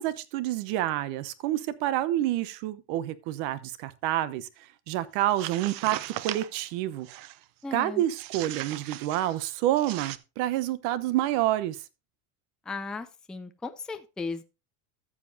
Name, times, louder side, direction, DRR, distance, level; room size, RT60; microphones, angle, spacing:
voice 1, 0.0-4.5 4.9-7.1 7.7-11.8, right 13 dB, 65° right, 1.1 m, -28 dB
sound 1, 5.2-6.6 7.0-7.4 8.2-9.4 9.8-10.2, right 15 dB, 45° right, 0.7 m, -37 dB
voice 2, 7.6-8.0 12.7-14.4, left 3 dB, ahead, 0.4 m, -36 dB
14.0 x 7.4 x 2.7 m
supercardioid pair, 130°, 48 cm